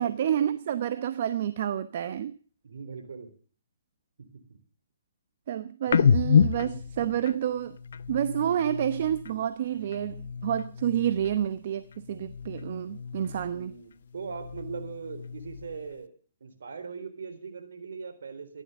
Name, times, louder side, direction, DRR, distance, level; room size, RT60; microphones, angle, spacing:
voice 1, 0.0-2.3 5.5-7.8 8.1-13.7, right 10 dB, 50° right, 0.9 m, -29 dB
voice 2, 2.6-3.3 4.2-4.6 8.3-8.6 13.5-16.1 16.4-18.6, right 5 dB, 70° right, 3.9 m, -40 dB
sound 1, 5.9-9.4 9.8-11.6 11.9-13.7 14.1-15.9, left 7 dB, 65° left, 0.7 m, -29 dB
15.0 x 11.5 x 6.6 m
hypercardioid pair, 140°, 0 cm